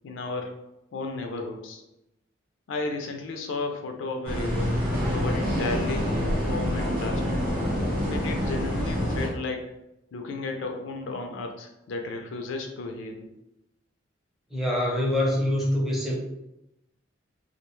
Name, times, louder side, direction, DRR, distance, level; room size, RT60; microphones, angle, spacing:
voice 1, 0.0-0.6 0.9-1.8 2.7-4.7 5.1-7.4 8.1-9.7 10.1-13.3, left 3 dB, 70° left, 4 dB, 0.4 m, -33 dB
sound 1, 4.2-9.3, equal, 50° right, 0.8 m, -26 dB
voice 2, 14.5-16.1, left 1 dB, ahead, -4 dB, 0.5 m, -25 dB
2.4 x 2.1 x 3.0 m, 0.89 s
head